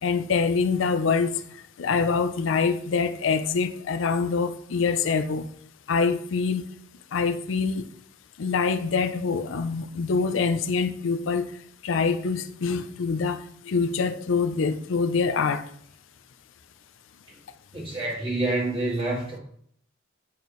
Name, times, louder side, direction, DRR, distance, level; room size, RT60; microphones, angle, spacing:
voice 1, 0.0-1.4 1.8-5.4 5.9-6.6 7.1-7.9 8.4-11.5 11.8-15.6, left 5 dB, 85° left, 10 dB, 0.5 m, -25 dB
voice 2, 17.7-19.4, right 2 dB, 30° right, -4 dB, 2.1 m, -27 dB
6.9 x 4.6 x 3.1 m, 0.65 s
head